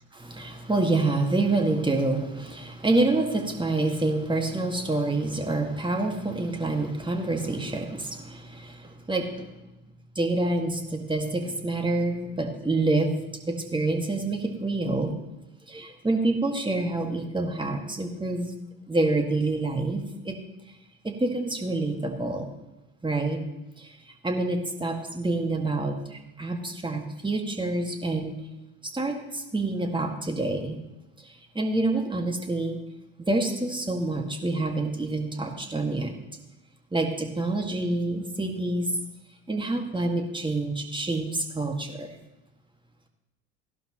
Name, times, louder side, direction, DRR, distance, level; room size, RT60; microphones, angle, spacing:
voice 1, 0.2-9.5 10.2-13.2 13.5-15.2 15.7-18.5 18.9-20.4 21.0-22.5 23.0-23.5 23.8-28.4 28.8-30.8 31.2-32.8 33.2-36.1 36.9-38.9 39.5-42.2, right 2 dB, 15° right, 4 dB, 1.9 m, -27 dB
16.5 x 11.5 x 3.1 m, 1.0 s
hypercardioid pair, 60°, 36 cm